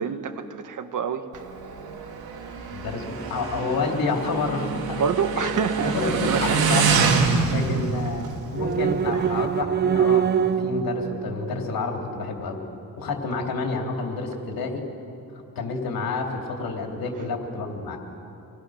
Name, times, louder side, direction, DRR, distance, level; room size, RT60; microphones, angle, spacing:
voice 1, 0.0-1.4 4.9-6.8 7.5-7.6 9.2-9.4, right 6 dB, 60° right, 8 dB, 1.5 m, -28 dB
Motorcycle, 1.3-9.6, right 5 dB, 90° right, 2.3 m, -26 dB
voice 2, 2.7-5.0 5.3-5.5 5.8-7.2 7.5-8.3 8.5-12.6 13.0-14.8 15.5-18.0, left 3 dB, 75° left, 2 dB, 3.3 m, -29 dB
sound 1, 6.9-11.7, right 8 dB, 30° right, 0.4 m, -25 dB
27.5 x 19.5 x 6.4 m, 2.7 s
cardioid pair, 115°, 36 cm